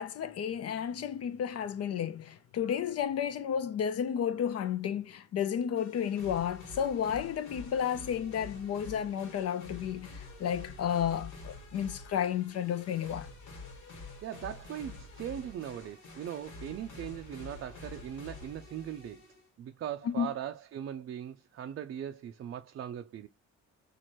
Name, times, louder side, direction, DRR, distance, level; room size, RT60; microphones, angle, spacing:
voice 1, 0.0-13.3 20.0-20.3, left 8 dB, 55° left, 0.5 m, -32 dB
sound 1, 5.8-19.5, left 3 dB, 70° left, 1.5 m, -48 dB
voice 2, 14.2-23.3, right 10 dB, 45° right, 0.4 m, -40 dB
2.9 x 2.5 x 4.3 m
cardioid pair, 90°, 30 cm